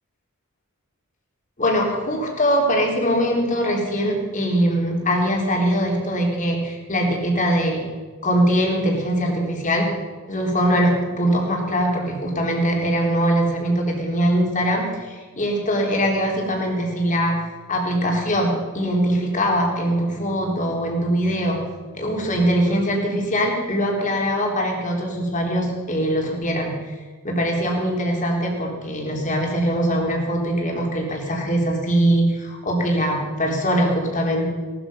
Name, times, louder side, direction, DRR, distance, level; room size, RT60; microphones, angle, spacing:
voice 1, 1.6-7.9 8.2-9.9 10.3-21.6 21.9-26.9 27.2-34.5, equal, 35° left, 0 dB, 3.7 m, -22 dB
18.5 x 12.5 x 5.7 m, 1.4 s
head